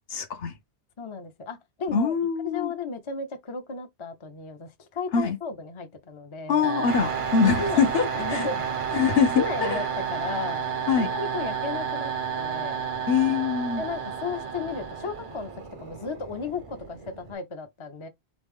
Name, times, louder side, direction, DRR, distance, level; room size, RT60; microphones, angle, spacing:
voice 1, 0.1-0.6 1.9-2.7 5.1-5.4 6.5-8.5 8.9-9.8 10.9-11.1 13.1-13.8, left 6 dB, 65° left, 1.0 m, -24 dB
voice 2, 1.0-2.2 2.4-6.6 7.6-8.6 9.3-10.7 10.9-12.8 13.8-18.1, left 4 dB, 35° left, 0.6 m, -34 dB
sound 1, 6.6-15.5, right 7 dB, 70° right, 0.9 m, -31 dB
sound 2, 6.9-17.3, right 4 dB, 40° right, 0.5 m, -39 dB
3.9 x 3.1 x 3.5 m
omnidirectional pair, 1.1 m